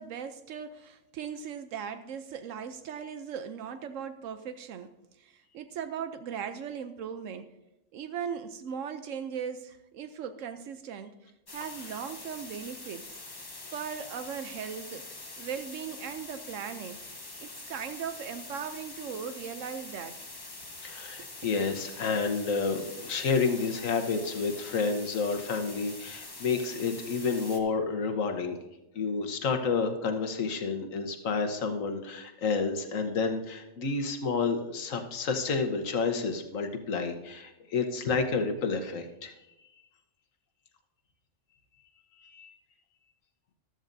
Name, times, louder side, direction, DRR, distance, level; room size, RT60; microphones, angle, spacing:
voice 1, 0.0-7.5 7.9-13.2 13.7-15.1 15.4-17.0 17.4-20.2, right 7 dB, 80° right, 10 dB, 1.0 m, -38 dB
sound 1, 11.5-27.6, left 2 dB, 20° left, 0.9 m, -44 dB
voice 2, 20.8-28.6 28.9-39.3 42.2-42.5, left 4 dB, 85° left, 5 dB, 1.5 m, -30 dB
14.0 x 12.5 x 2.6 m, 0.94 s
omnidirectional pair, 1.3 m